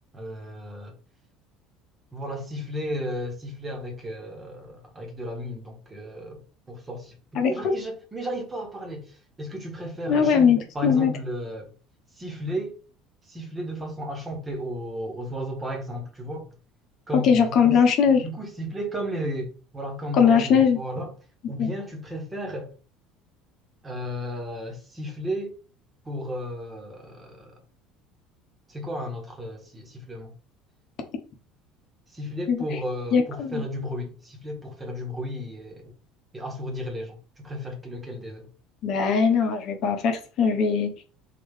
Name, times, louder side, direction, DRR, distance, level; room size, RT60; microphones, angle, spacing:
voice 1, 0.1-1.0 2.1-6.4 6.7-11.7 12.2-12.8 13.2-16.5 17.1-17.8 18.1-21.2 21.5-22.7 23.8-25.5 26.0-27.6 28.7-30.3 32.1-35.9 36.3-38.5, equal, 20° right, 1.5 m, -34 dB
voice 2, 7.3-7.7 10.1-11.1 17.2-18.2 20.1-20.8 21.6-21.7 32.5-32.8 33.1-33.6 38.8-40.9, left 6 dB, 50° left, 0.9 m, -20 dB
3.8 x 3.1 x 3.6 m
figure-of-eight pair, 65°, 0 cm